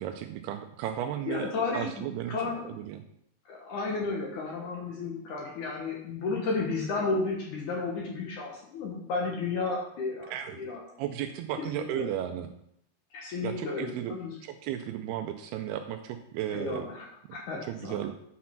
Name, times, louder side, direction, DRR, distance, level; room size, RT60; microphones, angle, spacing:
voice 1, 0.0-2.4 2.7-3.0 10.3-10.6 11.0-12.5 13.4-14.1 14.4-16.9 17.6-18.1, right 11 dB, 80° right, 7 dB, 2.4 m, -34 dB
voice 2, 1.3-2.7 3.5-10.8 11.6-12.1 13.1-14.3 16.5-18.0, left 3 dB, 65° left, -1 dB, 2.2 m, -33 dB
8.5 x 6.1 x 5.8 m, 0.73 s
omnidirectional pair, 4.9 m